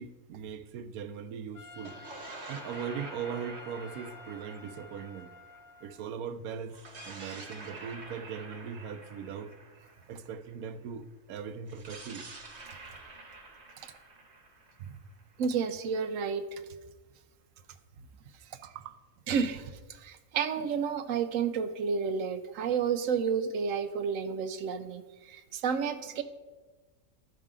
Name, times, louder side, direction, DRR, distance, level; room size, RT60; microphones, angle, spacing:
voice 1, 0.0-2.0 2.5-5.3 5.8-6.8 7.1-9.5 10.1-12.3 18.6-19.0, right 7 dB, 90° right, 1.1 m, -40 dB
Trumpet, 1.5-6.1, left 3 dB, 45° left, 0.7 m, -50 dB
sound 1, 1.7-6.1 6.7-10.6 11.7-15.5, right 3 dB, 50° right, 1.5 m, -48 dB
voice 2, 15.4-16.6 19.3-26.2, right 6 dB, 70° right, 1.0 m, -31 dB
13.0 x 5.7 x 3.7 m
omnidirectional pair, 1.5 m